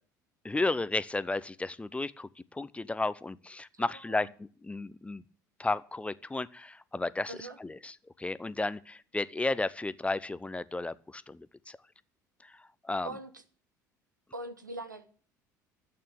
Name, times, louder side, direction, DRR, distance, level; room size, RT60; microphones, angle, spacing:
voice 1, 0.4-4.3 4.6-5.2 5.6-11.8 12.4-12.6 12.8-13.1, left 2 dB, 10° left, 18 dB, 0.8 m, -33 dB
voice 2, 3.7-4.3 7.3-7.6 13.0-13.4 14.3-15.1, right 2 dB, 90° right, 10 dB, 1.4 m, -42 dB
13.0 x 8.8 x 8.8 m, 0.43 s
figure-of-eight pair, 60°, 10 cm